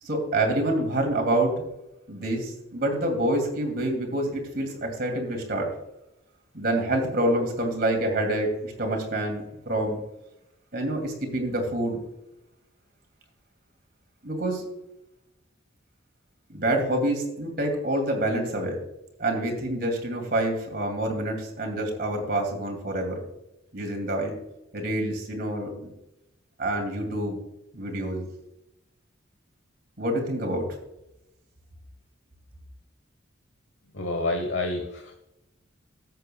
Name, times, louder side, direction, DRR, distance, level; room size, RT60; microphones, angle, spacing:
voice 1, 0.0-1.6 2.1-5.7 6.5-10.0 10.7-12.0 14.2-14.6 16.5-18.8 19.2-23.2 23.7-24.4 24.7-25.9 26.6-27.4 27.7-28.3 30.0-30.7, right 1 dB, 50° right, 2 dB, 2.6 m, -27 dB
voice 2, 33.9-35.1, left 2 dB, 60° left, 4 dB, 1.1 m, -28 dB
13.5 x 8.2 x 2.3 m, 0.88 s
head